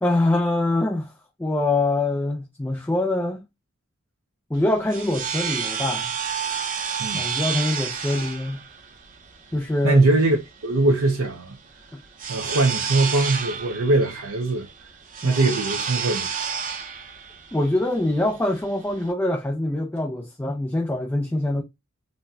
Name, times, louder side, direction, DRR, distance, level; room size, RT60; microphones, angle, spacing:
voice 1, 0.0-1.1 1.4-3.5 4.5-6.1 7.1-8.6 9.5-10.1 11.9-12.0 15.2-15.6 17.5-21.6, left 2 dB, 10° left, 0.3 m, -24 dB
sound 1, 4.5-19.1, right 6 dB, 40° right, 0.6 m, -31 dB
voice 2, 9.8-11.5 12.3-14.7 15.2-16.3, right 2 dB, 85° right, 0.6 m, -21 dB
4.0 x 2.2 x 2.6 m
head